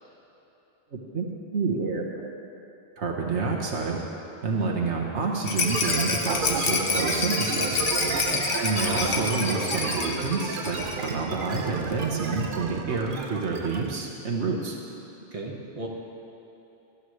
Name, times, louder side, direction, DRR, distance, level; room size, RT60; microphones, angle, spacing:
voice 1, 0.9-1.3 1.5-2.0 3.0-4.0 4.4-7.9 8.6-14.8, right 4 dB, 80° right, -2 dB, 1.5 m, -28 dB
Rattle, 5.4-11.1 11.4-11.5 11.8-11.9, left 4 dB, 55° left, 1.1 m, -28 dB
sound 1, 5.7-14.0, right 4 dB, 50° right, 0.9 m, -32 dB
voice 2, 15.3-15.9, right 2 dB, 30° right, -2 dB, 1.6 m, -35 dB
20.0 x 12.5 x 3.3 m, 3.0 s
omnidirectional pair, 1.2 m